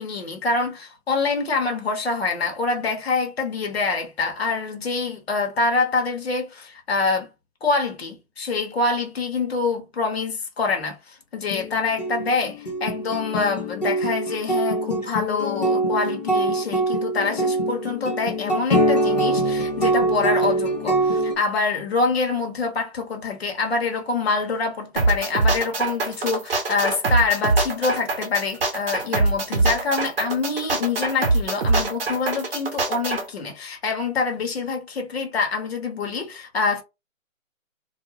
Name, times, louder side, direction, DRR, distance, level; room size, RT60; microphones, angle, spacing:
voice 1, 0.0-7.3 7.6-36.8, left 4 dB, 50° left, 0.9 m, -25 dB
sound 1, 11.5-21.3, right 1 dB, 30° left, 0.6 m, -23 dB
sound 2, 25.0-33.2, right 3 dB, 45° right, 0.8 m, -23 dB
2.4 x 2.2 x 3.0 m
figure-of-eight pair, 155°, 41 cm